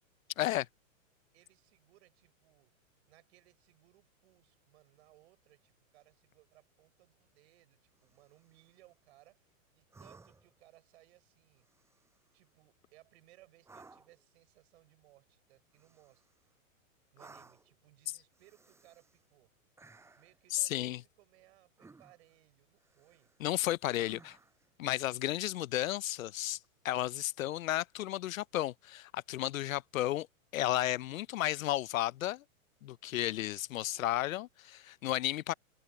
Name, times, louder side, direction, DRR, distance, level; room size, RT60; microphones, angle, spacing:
voice 1, 1.3-2.7 3.1-9.5 9.7-11.7 12.3-16.3 17.1-19.5 20.2-23.3 33.3-34.2, right 17 dB, 50° right, 7.1 m, -65 dB
sound 1, 8.0-8.7 9.9-10.6 11.6-12.3 13.6-14.2 15.7-16.5 17.2-17.7 18.3-19.2 19.8-20.4 21.8-22.3 22.8-23.5 23.9-24.7 26.5-26.7, right 3 dB, 5° right, 6.8 m, -59 dB
voice 2, 20.5-21.0 23.4-24.4 24.8-26.6 26.8-30.3 30.5-32.4 32.8-35.5, left 14 dB, 70° left, 0.7 m, -33 dB
hypercardioid pair, 160°, 41 cm